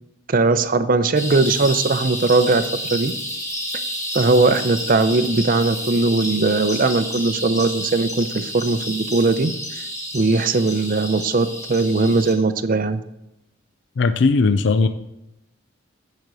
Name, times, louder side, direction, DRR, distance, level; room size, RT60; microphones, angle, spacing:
voice 1, 0.3-3.1 4.1-9.8 10.1-13.0, right 3 dB, 45° right, 11 dB, 0.5 m, -19 dB
sound 1, 1.1-12.3, equal, 15° left, 2.1 m, -30 dB
voice 2, 14.0-14.9, left 4 dB, 60° left, 10 dB, 0.4 m, -17 dB
9.3 x 5.1 x 6.2 m, 0.86 s
head